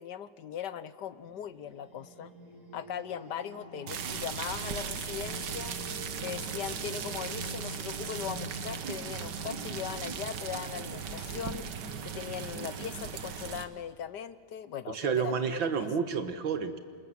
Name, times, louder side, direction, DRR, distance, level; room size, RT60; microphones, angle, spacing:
voice 1, 0.0-2.3 2.7-5.8 6.2-11.7 12.0-15.6, left 9 dB, 65° left, 15 dB, 1.4 m, -39 dB
sound 1, 1.1-11.3, right 1 dB, 40° right, 3.2 m, -47 dB
sound 2, 3.9-13.6, right 6 dB, 65° right, 1.9 m, -37 dB
voice 2, 14.9-16.8, right 6 dB, 85° right, 9 dB, 2.4 m, -30 dB
27.5 x 27.0 x 7.6 m, 2.2 s
omnidirectional pair, 2.1 m